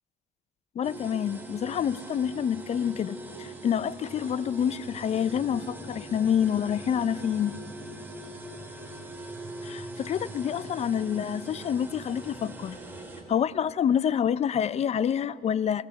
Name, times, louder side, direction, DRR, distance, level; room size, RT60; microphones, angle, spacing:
voice 1, 0.8-7.5 9.6-12.8 13.3-15.9, left 8 dB, 40° left, 0.5 m, -27 dB
sound 1, 0.8-13.2, right 2 dB, 10° right, 3.3 m, -42 dB
24.5 x 18.0 x 7.1 m
cardioid pair, 110°, 17 cm